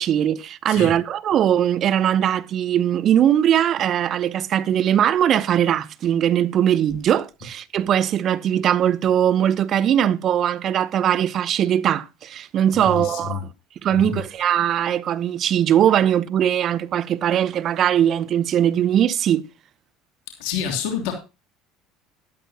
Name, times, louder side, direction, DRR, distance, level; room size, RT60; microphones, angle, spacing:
voice 1, 0.0-13.4 13.8-19.4, right 10 dB, 50° right, 0.8 m, -20 dB
voice 2, 12.8-13.4 13.9-14.2 20.4-21.1, left 7 dB, 70° left, 3.1 m, -28 dB
13.0 x 12.0 x 2.9 m
hypercardioid pair, 70°, 0 cm